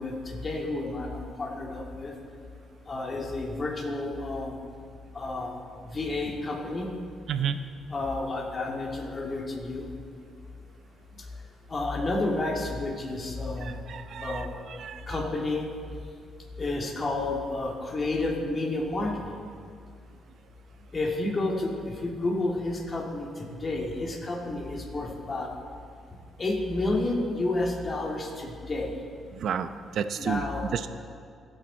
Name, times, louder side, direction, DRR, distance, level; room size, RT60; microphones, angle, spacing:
voice 1, 0.0-2.1 2.9-4.5 5.1-5.6 5.9-6.9 7.9-9.9 11.7-13.8 14.2-14.5 15.1-15.7 16.6-19.3 20.9-25.5 26.4-28.9 30.2-30.7, left 2 dB, 35° left, -1 dB, 2.8 m, -30 dB
voice 2, 13.6-15.2 29.3-30.4 30.7-30.9, right 8 dB, 70° right, 10 dB, 0.8 m, -32 dB
27.5 x 9.3 x 4.4 m, 2.2 s
cardioid pair, 90°, 0 cm